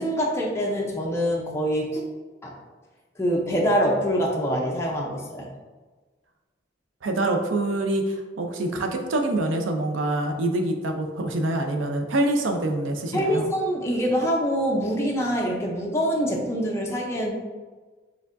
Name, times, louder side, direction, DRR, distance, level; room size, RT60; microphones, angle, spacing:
voice 1, 0.0-2.0 2.4-2.5 3.2-5.5 13.1-17.3, equal, 15° left, -2 dB, 0.6 m, -25 dB
voice 2, 7.0-13.4, right 2 dB, 90° right, 4 dB, 0.5 m, -25 dB
4.5 x 3.5 x 2.5 m, 1.3 s
head